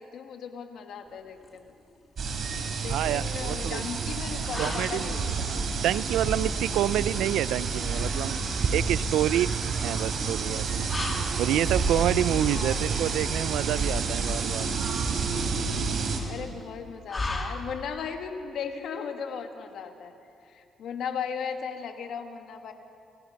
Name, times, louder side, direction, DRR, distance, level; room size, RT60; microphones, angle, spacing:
voice 1, 0.0-1.7 2.8-5.4 12.5-12.9 16.2-20.1 20.4-22.7, left 6 dB, 70° left, 5 dB, 1.9 m, -37 dB
sound 1, 1.1-18.1, left 2 dB, 30° left, 2.8 m, -40 dB
sound 2, 2.2-16.2, right 4 dB, 55° right, 3.8 m, -29 dB
voice 2, 2.9-3.8 4.6-8.4 8.7-10.9 11.4-14.7, right 12 dB, 85° right, 18 dB, 0.4 m, -28 dB
29.5 x 17.5 x 5.8 m, 2.5 s
cardioid pair, 90°, 0 cm